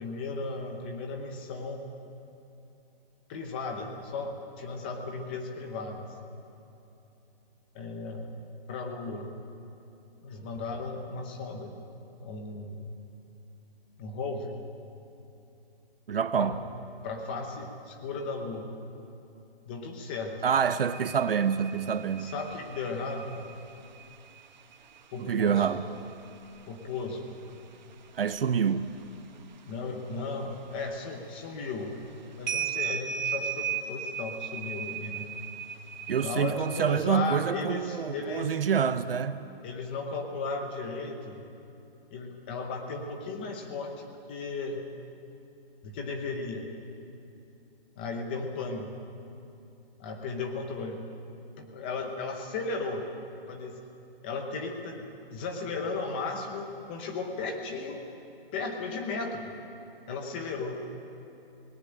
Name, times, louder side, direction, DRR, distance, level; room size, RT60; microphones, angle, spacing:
voice 1, 0.0-1.8 3.3-6.1 7.7-8.3 8.7-9.3 10.2-11.7 12.2-12.9 14.0-14.6 16.4-16.5 17.0-18.7 19.7-20.4 22.2-23.5 25.1-25.7 26.7-27.2 29.7-31.9 32.4-35.3 36.2-38.6 39.6-41.4 42.1-44.8 45.8-46.7 48.0-48.9 50.0-51.0 51.6-53.1 53.5-53.8 54.2-58.1 58.5-59.5 60.1-60.8, left 3 dB, 10° left, 4 dB, 0.8 m, -35 dB
voice 2, 16.1-16.6 20.4-22.3 25.2-25.8 28.1-28.9 36.1-39.5, right 7 dB, 70° right, 12 dB, 0.9 m, -27 dB
sound 1, 20.5-27.1 27.5-29.1 29.5-30.8 31.5-31.6 31.9-37.0, right 8 dB, 50° right, 1.3 m, -37 dB
19.0 x 18.0 x 8.8 m, 2.8 s
hypercardioid pair, 175°, 30 cm